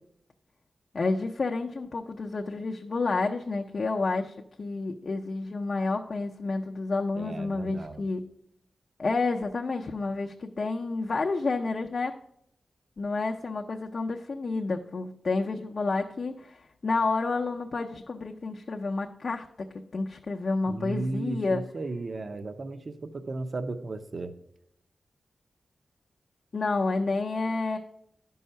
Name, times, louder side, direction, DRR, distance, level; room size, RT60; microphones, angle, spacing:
voice 1, 0.9-8.2 9.0-12.1 13.0-19.7 19.9-21.6 26.5-27.8, left 3 dB, 45° left, 1 dB, 0.6 m, -30 dB
voice 2, 7.2-8.0 20.7-24.3, right 2 dB, 45° right, 9 dB, 0.6 m, -35 dB
11.0 x 5.5 x 5.5 m, 0.73 s
wide cardioid pair, 130°, 0 cm